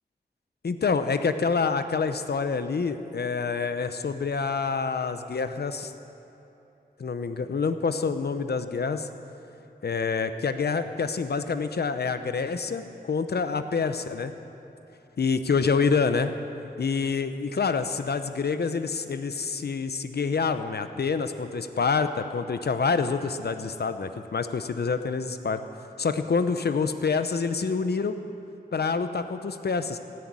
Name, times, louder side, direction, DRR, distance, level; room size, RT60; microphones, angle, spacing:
voice 1, 0.6-5.9 7.0-9.1 9.8-14.3 15.2-16.3 16.8-25.6 26.0-28.2 28.7-30.0, left 5 dB, 80° left, 9 dB, 0.8 m, -27 dB
17.0 x 9.5 x 8.7 m, 2.9 s
wide cardioid pair, 75°, 17 cm